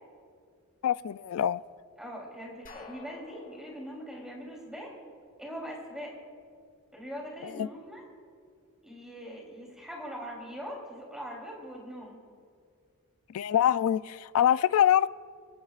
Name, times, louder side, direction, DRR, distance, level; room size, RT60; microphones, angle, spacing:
voice 1, 0.8-1.6 7.4-7.7 13.3-15.1, left 10 dB, 70° left, 16 dB, 0.3 m, -25 dB
voice 2, 2.0-4.9 5.4-6.2 6.9-8.0 8.8-12.2, equal, 5° right, -2 dB, 3.2 m, -42 dB
sound 1, 2.7-5.5, left 3 dB, 40° left, 1.7 m, -51 dB
26.0 x 17.0 x 2.4 m, 2.1 s
head